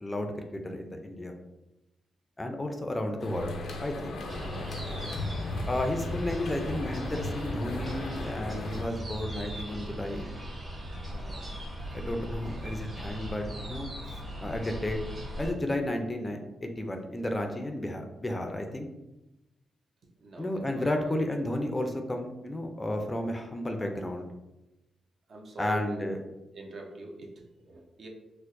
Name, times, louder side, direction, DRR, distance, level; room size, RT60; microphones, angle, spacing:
voice 1, 0.0-1.3 2.4-3.5 3.8-4.2 5.7-10.3 11.1-11.4 11.7-15.0 15.4-18.9 20.4-24.3 25.6-26.2, left 1 dB, 20° left, 4 dB, 0.4 m, -33 dB
sound 1, 3.2-8.8, left 2 dB, 80° left, 0.4 m, -36 dB
sound 2, 4.3-15.5, right 1 dB, 35° right, 1.0 m, -39 dB
voice 2, 20.2-21.1 23.8-24.0 25.3-26.1 26.5-28.1, right 2 dB, 55° right, 1 dB, 0.6 m, -44 dB
4.4 x 2.1 x 2.5 m, 0.99 s
cardioid pair, 100°, 0 cm